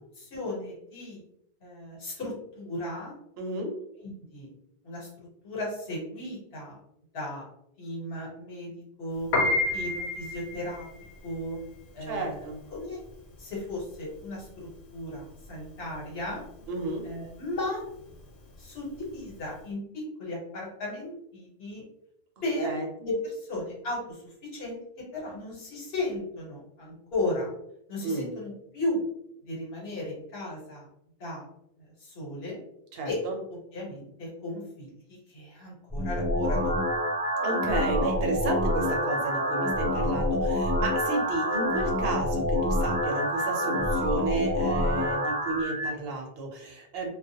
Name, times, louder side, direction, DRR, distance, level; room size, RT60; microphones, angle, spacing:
voice 1, 0.2-1.2 1.6-3.1 4.3-4.5 4.8-5.1 5.4-6.8 7.1-7.5 7.8-8.7 9.0-9.3 9.7-10.9 11.2-11.6 11.9-12.4 12.7-13.0 13.4-16.4 17.0-17.8 18.6-21.8 22.4-24.8 25.1-27.5 27.9-29.1 29.4-30.9 31.2-31.5 31.8-32.6 33.0-33.2 33.5-36.8, left 1 dB, 75° left, -3 dB, 1.2 m, -35 dB
voice 2, 3.4-3.7 12.0-12.6 16.7-17.1 22.6-22.9 28.0-28.3 32.9-33.4 37.4-47.1, right 3 dB, 75° right, 1 dB, 0.8 m, -32 dB
Piano, 9.2-19.6, left 2 dB, 90° left, 0.9 m, -32 dB
sound 1, 35.9-45.9, left 1 dB, 15° right, 0.5 m, -27 dB
2.3 x 2.1 x 2.7 m, 0.76 s
omnidirectional pair, 1.1 m